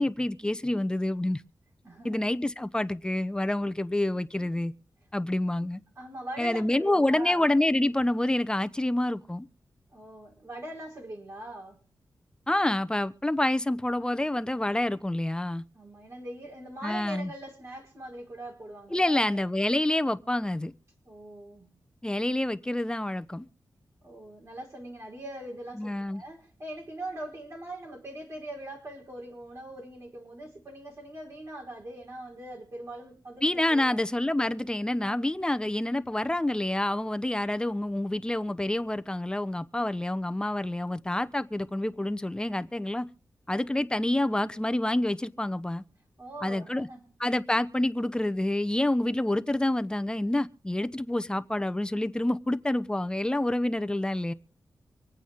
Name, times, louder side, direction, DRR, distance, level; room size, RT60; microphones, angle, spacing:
voice 1, 0.0-1.4 2.0-4.7 5.1-5.8 6.4-9.5 12.5-15.6 16.8-17.3 18.9-20.7 22.0-23.5 25.8-26.2 33.4-43.1 43.5-45.8 46.4-46.9 47.2-54.3, left 1 dB, 10° left, 0.8 m, -27 dB
voice 2, 1.8-2.2 6.0-7.4 9.9-11.8 15.7-19.4 21.0-21.7 24.0-34.0 35.0-35.3 46.2-47.1, right 1 dB, 45° right, 4.7 m, -42 dB
25.5 x 9.1 x 3.7 m
wide cardioid pair, 90°, 7 cm